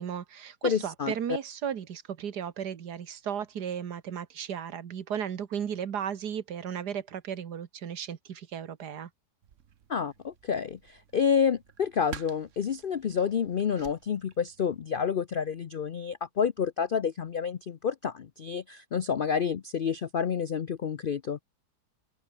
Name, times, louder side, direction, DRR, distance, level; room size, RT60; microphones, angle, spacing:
voice 1, 0.0-9.1, right 8 dB, 70° right, 1.9 m, -35 dB
voice 2, 0.6-1.1 9.9-21.4, left 7 dB, 65° left, 0.5 m, -29 dB
sound 1, 9.4-14.8, right 8 dB, 50° right, 1.2 m, -50 dB
open air
omnidirectional pair, 1.8 m